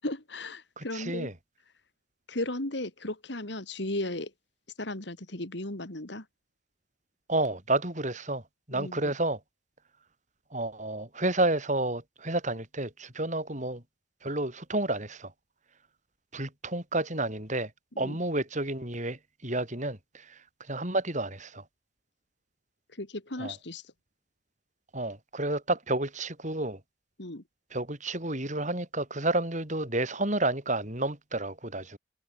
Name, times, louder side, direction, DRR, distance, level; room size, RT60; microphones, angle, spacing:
voice 1, 0.0-1.3 2.3-4.3 4.8-6.3 8.7-9.1 18.0-18.2 22.9-23.8 27.2-27.4, left 1 dB, 60° left, 2.7 m, -35 dB
voice 2, 0.8-1.3 7.3-8.4 8.7-9.4 10.5-13.8 14.2-15.3 16.3-17.7 18.0-21.6 23.4-23.5 24.9-26.8 27.7-32.0, right 2 dB, 40° right, 7.2 m, -30 dB
head